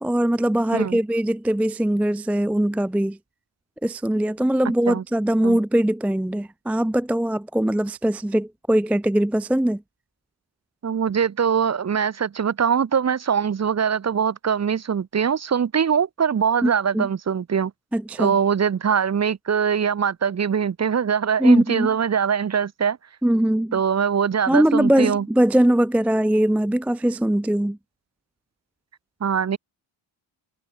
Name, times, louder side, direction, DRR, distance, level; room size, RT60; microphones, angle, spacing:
voice 1, 0.0-3.2 3.8-9.8 16.6-17.1 17.9-18.3 21.4-21.9 23.2-23.8 24.5-27.8, right 1 dB, 5° right, 0.3 m, -21 dB
voice 2, 10.8-17.7 18.2-23.0 23.7-25.3 29.2-29.6, right 7 dB, 35° right, 0.9 m, -22 dB
cardioid pair, 80°, 48 cm